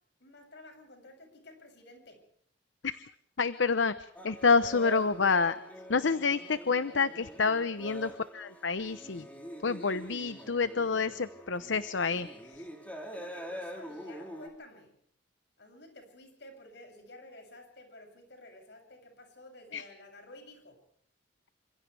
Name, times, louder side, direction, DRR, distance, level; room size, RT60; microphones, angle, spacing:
voice 1, 0.2-2.2 6.2-6.4 13.1-15.0 15.6-20.8, left 1 dB, 65° left, 4 dB, 7.9 m, -52 dB
voice 2, 3.4-3.9 4.2-5.6 5.9-9.2 9.6-12.3 19.7-19.8, left 4 dB, 90° left, 13 dB, 0.9 m, -28 dB
Carnatic varnam by Vignesh in Sahana raaga, 4.2-14.5, equal, 10° left, 4.8 m, -45 dB
29.0 x 26.5 x 3.5 m, 0.65 s
head